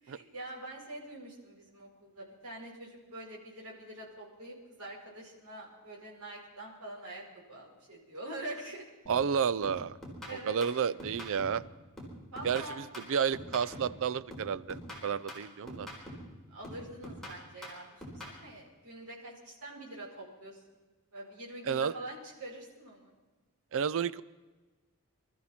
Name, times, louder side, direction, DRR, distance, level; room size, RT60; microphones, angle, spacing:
voice 1, 0.0-8.8 10.3-10.6 12.3-12.8 16.5-20.6 21.1-23.1, right 1 dB, 80° right, -2 dB, 4.8 m, -45 dB
sound 1, 9.1-9.3 9.6-11.7 12.0-14.0 14.3-16.3 16.6-18.4, equal, ahead, 4.3 m, -45 dB
voice 2, 9.1-10.0 10.3-11.6 12.4-15.9 21.6-21.9 23.7-24.2, right 7 dB, 60° right, 19 dB, 0.4 m, -31 dB
24.5 x 13.5 x 4.3 m, 1.2 s
head